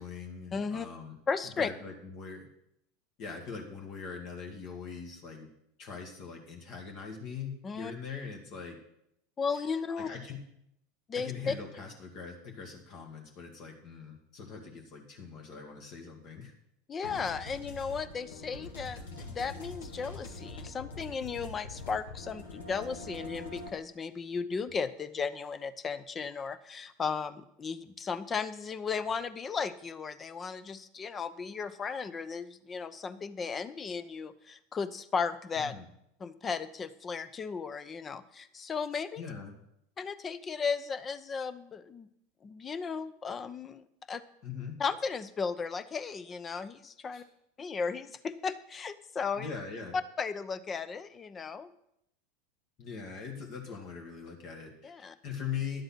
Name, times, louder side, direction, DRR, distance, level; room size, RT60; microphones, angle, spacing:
voice 1, 0.0-1.2 1.6-2.5 3.2-5.5 5.8-8.8 10.0-10.4 11.1-16.5 19.1-19.2 35.6-35.9 39.2-39.5 44.4-44.8 47.1-47.2 49.4-50.0 52.8-55.8, left 6 dB, 45° left, 2 dB, 2.0 m, -41 dB
voice 2, 0.5-0.9 1.3-1.7 7.6-7.9 9.4-10.1 11.1-11.5 16.9-35.7 36.2-39.2 40.0-42.1 42.4-44.2 44.8-47.2 47.6-49.5 50.2-51.7 54.8-55.1, left 5 dB, 25° left, 14 dB, 0.8 m, -35 dB
sound 1, 17.0-23.7, left 2 dB, 70° left, 2.0 m, -44 dB
11.0 x 7.8 x 6.0 m, 0.78 s
figure-of-eight pair, 80°, 0 cm